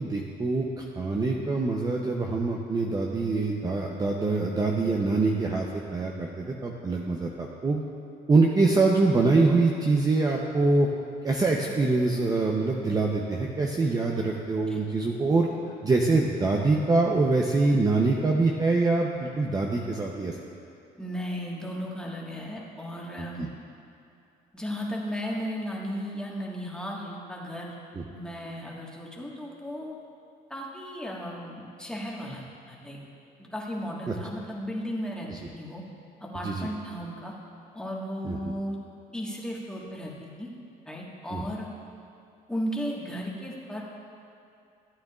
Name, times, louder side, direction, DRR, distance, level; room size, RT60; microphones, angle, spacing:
voice 1, 0.0-5.7 5.9-7.8 8.3-10.9 11.2-15.5 15.8-20.3 23.2-23.5 27.9-28.0 35.3-35.4 36.4-36.7 38.2-38.4 41.3-41.4, right 3 dB, 20° right, 0 dB, 0.7 m, -24 dB
voice 2, 21.0-23.5 24.5-27.7 28.1-29.9 30.5-33.0 33.4-35.3 35.5-35.8 36.2-37.3 37.7-38.8 39.1-40.5 40.8-41.7 42.5-43.8, equal, 5° left, -3 dB, 1.5 m, -35 dB
14.5 x 9.0 x 2.4 m, 2.6 s
cardioid pair, 110°, 17 cm